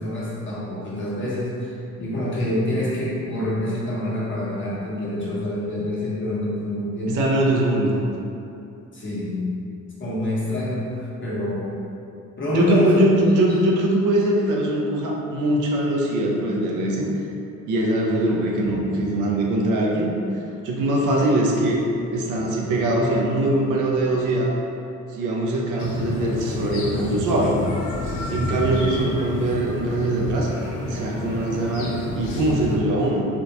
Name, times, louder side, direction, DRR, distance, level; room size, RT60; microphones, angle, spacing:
voice 1, 0.0-7.2 8.9-9.5 10.0-11.8 12.4-13.7 28.5-28.6, left 1 dB, 40° left, -8 dB, 1.1 m, -26 dB
voice 2, 7.1-8.0 12.5-17.1 17.7-21.8 22.1-24.5 25.1-27.6 28.3-30.5 30.9-33.3, right 1 dB, 90° right, -2 dB, 0.6 m, -22 dB
sound 1, 25.8-32.8, left 2 dB, 80° left, 0.6 m, -29 dB
3.5 x 2.5 x 2.8 m, 2.7 s
cardioid pair, 90°, 30 cm